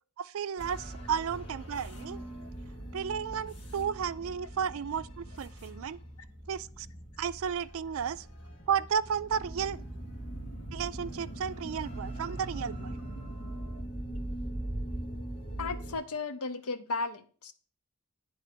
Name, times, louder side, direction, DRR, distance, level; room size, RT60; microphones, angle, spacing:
voice 1, 0.2-2.2 2.9-6.0 6.5-6.9 7.2-8.3 8.7-9.8 10.7-13.0, right 7 dB, 65° right, 0.4 m, -33 dB
sound 1, 0.6-16.0, right 1 dB, 55° left, 2.1 m, -41 dB
voice 2, 15.6-17.5, left 3 dB, 85° left, 0.8 m, -35 dB
9.7 x 3.6 x 6.7 m
head